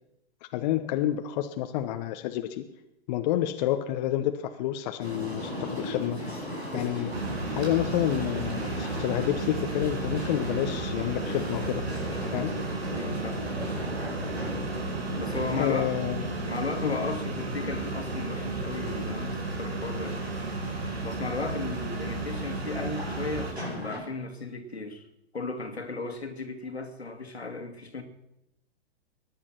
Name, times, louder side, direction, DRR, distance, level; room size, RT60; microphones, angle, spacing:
voice 1, 0.5-2.6 3.1-6.2 6.7-7.1 7.5-11.8 12.3-12.5 15.6-16.2 16.8-17.0, left 12 dB, 40° left, 7 dB, 1.1 m, -29 dB
sound 1, 5.0-24.0, left 1 dB, 90° right, 5.2 m, -37 dB
sound 2, 7.1-23.5, right 3 dB, 75° right, 2.7 m, -34 dB
voice 2, 12.9-13.5 15.2-15.9 16.4-20.2 21.0-25.1 25.3-28.0, left 3 dB, 80° left, 6 dB, 2.3 m, -35 dB
21.0 x 10.0 x 5.9 m, 0.85 s
figure-of-eight pair, 105°, 31 cm